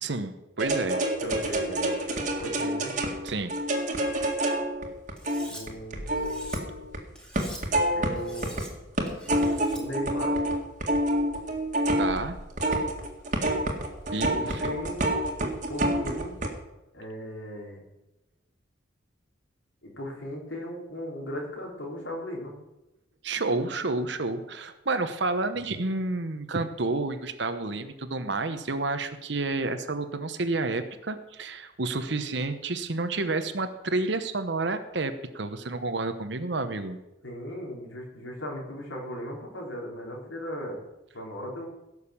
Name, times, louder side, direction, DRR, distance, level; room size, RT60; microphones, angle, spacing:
voice 1, 0.0-1.0 3.2-3.6 12.0-12.4 14.1-14.7 23.2-37.0, right 3 dB, 65° right, 9 dB, 1.0 m, -30 dB
sound 1, 0.6-7.0 7.3-8.6 9.0-16.5, right 1 dB, 40° right, 2.0 m, -28 dB
voice 2, 1.2-2.0 2.4-2.9 5.4-6.5 7.9-8.7 9.7-10.4 14.3-15.1 15.7-16.4 16.9-17.8 19.8-22.5 37.2-40.8 41.1-41.7, equal, 75° left, -1 dB, 3.7 m, -37 dB
Cutlery silverware, 5.2-5.6 6.1-6.6 7.2-7.6 8.2-8.7 9.1-9.8, right 1 dB, 5° left, 2.4 m, -44 dB
16.5 x 6.6 x 7.1 m, 0.96 s
head